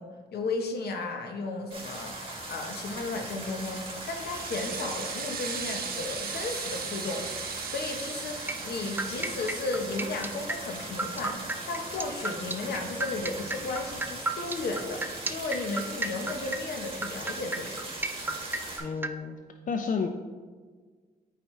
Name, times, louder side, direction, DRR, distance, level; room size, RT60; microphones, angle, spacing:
voice 1, 0.0-7.3 7.7-17.8, left 3 dB, 80° left, 4 dB, 1.0 m, -34 dB
sound 1, 1.7-18.8, right 2 dB, 35° right, 2.0 m, -39 dB
sound 2, 3.5-10.4, right 6 dB, 65° right, 0.8 m, -38 dB
sound 3, 8.5-19.1, right 2 dB, 10° right, 0.4 m, -33 dB
voice 2, 18.8-19.4 19.7-20.1, left 5 dB, 55° left, 5 dB, 0.5 m, -30 dB
8.6 x 4.8 x 3.1 m, 1.5 s
cardioid pair, 85°, 16 cm